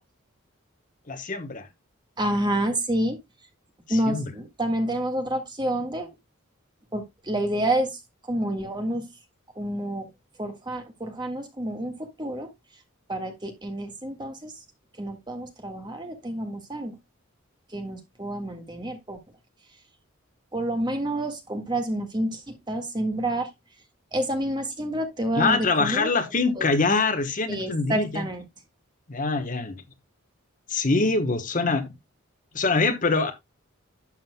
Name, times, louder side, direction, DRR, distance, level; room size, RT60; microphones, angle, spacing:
voice 1, 1.1-1.7 3.9-4.3 25.3-28.2 29.1-29.8 30.7-31.9 32.5-33.3, left 3 dB, 40° left, 1.1 m, -24 dB
voice 2, 2.2-3.2 3.9-6.1 6.9-8.0 8.3-9.1 9.5-10.1 10.4-11.9 12.2-12.5 13.1-14.5 15.0-16.9 17.7-19.2 20.5-23.5 24.1-26.1 26.6-26.7 27.5-28.4, right 1 dB, 20° right, 1.7 m, -28 dB
12.0 x 7.5 x 2.2 m
head